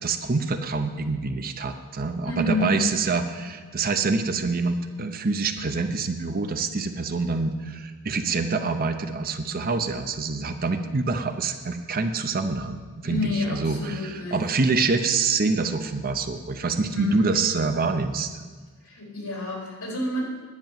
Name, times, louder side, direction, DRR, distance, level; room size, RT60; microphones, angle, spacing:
voice 1, 0.0-18.4, right 4 dB, 40° right, 8 dB, 0.7 m, -26 dB
voice 2, 2.2-2.8 13.0-14.4 16.9-17.3 18.8-20.2, left 2 dB, 70° left, -2 dB, 3.8 m, -29 dB
10.5 x 6.0 x 8.9 m, 1.4 s
head